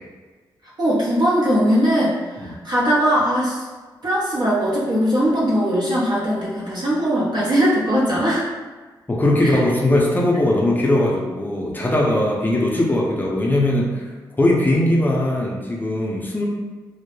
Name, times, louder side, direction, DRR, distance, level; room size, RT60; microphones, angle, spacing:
voice 1, 0.8-3.7 4.0-8.4 9.4-9.5, equal, 60° right, -6 dB, 0.8 m, -20 dB
voice 2, 9.1-14.1 14.4-16.5, left 1 dB, 20° left, -2 dB, 0.5 m, -19 dB
2.2 x 2.0 x 3.0 m, 1.3 s
cardioid pair, 80°, 8 cm